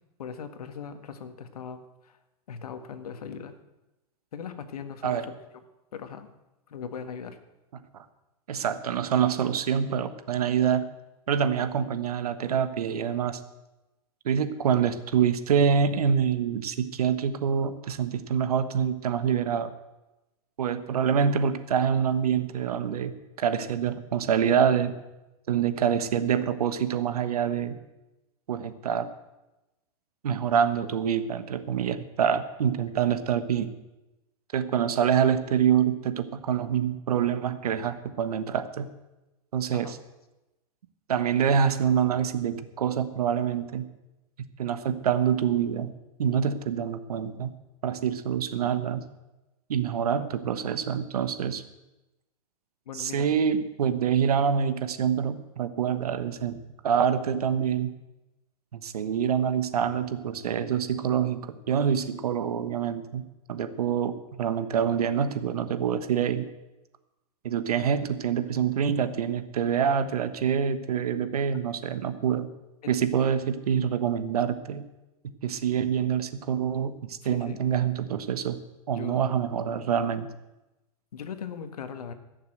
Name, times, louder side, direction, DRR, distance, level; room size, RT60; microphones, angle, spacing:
voice 1, 0.2-2.2 2.5-3.5 4.3-5.4 5.9-6.3 6.7-7.4 39.7-40.0 50.2-50.3 52.8-53.3 72.8-72.9 77.3-77.6 79.0-79.2 81.1-82.1, left 7 dB, 85° left, 9 dB, 1.6 m, -39 dB
voice 2, 8.5-10.8 11.3-13.4 14.2-19.7 20.6-25.0 25.5-27.8 28.5-29.1 30.2-33.7 34.5-38.9 39.5-40.0 41.1-43.8 44.6-45.9 46.2-47.5 47.8-49.0 49.7-51.6 52.9-56.6 56.8-57.9 58.7-63.2 63.5-66.5 67.4-72.5 72.9-74.9 75.4-78.6 78.9-80.3, right 8 dB, 85° right, 11 dB, 1.2 m, -26 dB
16.5 x 6.8 x 7.8 m, 1.0 s
hypercardioid pair, 130°, 19 cm